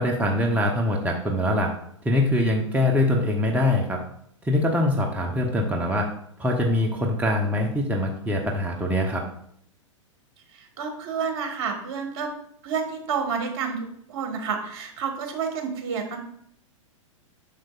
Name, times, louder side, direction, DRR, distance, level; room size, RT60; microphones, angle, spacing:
voice 1, 0.0-1.7 2.0-4.0 4.4-6.1 6.4-9.2, left 1 dB, 10° right, 1 dB, 0.8 m, -23 dB
voice 2, 10.8-12.3 12.6-16.2, right 6 dB, 50° right, 3 dB, 1.6 m, -29 dB
7.3 x 6.4 x 2.5 m, 0.67 s
hypercardioid pair, 105°, 17 cm